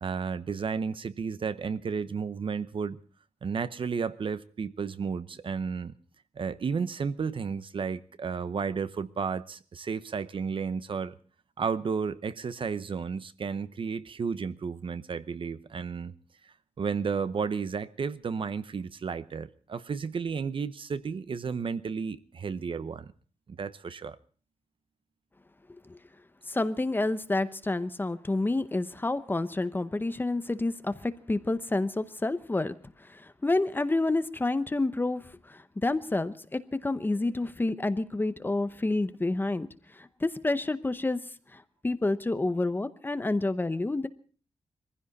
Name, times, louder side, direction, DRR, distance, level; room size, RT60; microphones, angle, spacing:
voice 1, 0.0-3.0 3.4-5.9 6.4-11.1 11.6-16.1 16.8-23.1 23.5-24.2, right 5 dB, 45° right, 0.8 m, -32 dB
voice 2, 26.5-32.7 33.0-39.7 39.9-41.2 41.5-44.1, left 2 dB, 15° left, 0.8 m, -29 dB
22.5 x 15.5 x 4.1 m
wide cardioid pair, 160°, 12 cm